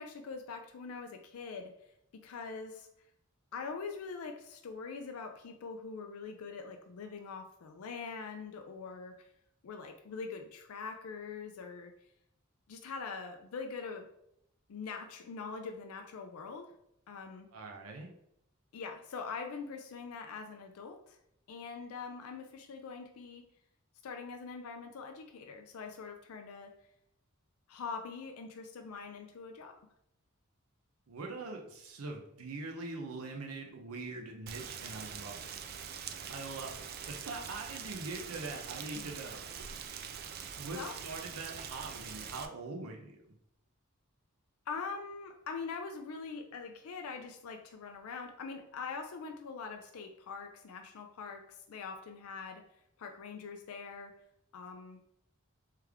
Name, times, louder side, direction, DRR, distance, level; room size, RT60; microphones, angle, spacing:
voice 1, 0.0-1.7 2.2-2.9 3.5-9.3 9.6-11.9 12.7-14.1 14.7-16.7 17.1-17.5 18.7-21.2 21.5-23.4 24.0-26.7 27.7-29.8 40.7-40.9 44.7-52.6 53.0-54.2 54.5-55.0, left 5 dB, 85° left, 5 dB, 0.4 m, -43 dB
voice 2, 17.5-18.1 31.1-35.6 36.3-39.8 40.6-43.2, right 3 dB, 85° right, 2 dB, 0.6 m, -43 dB
Rain, 34.5-42.5, right 7 dB, 45° right, 0.3 m, -44 dB
3.4 x 3.3 x 3.4 m, 0.77 s
head